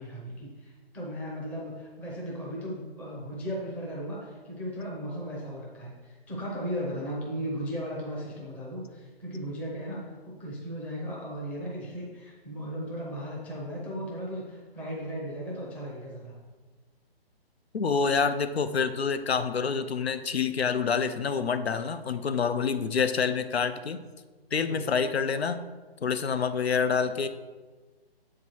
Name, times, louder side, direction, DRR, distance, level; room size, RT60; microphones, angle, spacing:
voice 1, 0.0-16.4 24.6-25.0, equal, 5° left, -4 dB, 0.6 m, -36 dB
voice 2, 17.7-24.0 24.5-25.6 26.0-27.3, left 5 dB, 75° left, 10 dB, 0.6 m, -27 dB
7.3 x 4.6 x 4.5 m, 1.3 s
figure-of-eight pair, 140°, 31 cm